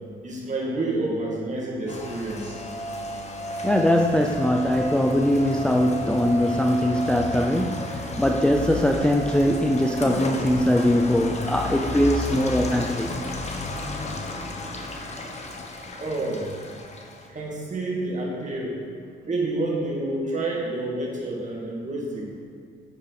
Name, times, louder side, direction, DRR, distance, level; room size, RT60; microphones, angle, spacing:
voice 1, 0.2-2.5 16.0-16.5 17.3-18.7 19.2-22.2, right 2 dB, 35° right, -3 dB, 2.3 m, -28 dB
Rain, 1.9-17.3, left 1 dB, 35° left, 1.1 m, -32 dB
voice 2, 3.6-13.1, left 1 dB, 5° left, 2 dB, 0.4 m, -21 dB
10.5 x 4.7 x 4.9 m, 2.3 s
cardioid pair, 90°, 20 cm